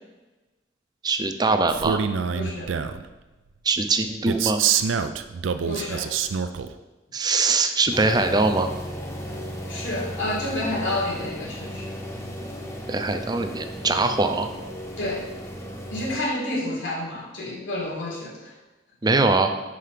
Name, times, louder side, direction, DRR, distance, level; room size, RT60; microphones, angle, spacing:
voice 1, 1.0-2.0 3.6-4.6 7.1-8.7 12.9-14.5 19.0-19.5, right 3 dB, 20° right, 7 dB, 0.5 m, -22 dB
Male speech man speaking, 1.7-3.0 4.3-6.7, right 7 dB, 90° right, 0.4 m, -25 dB
voice 2, 2.3-2.7 5.6-6.1 9.7-11.9 15.0-15.2 15.9-18.6, left 1 dB, 85° left, -3 dB, 2.3 m, -29 dB
sound 1, 7.9-16.2, equal, 15° left, 0.7 m, -35 dB
5.6 x 5.0 x 5.8 m, 1.1 s
head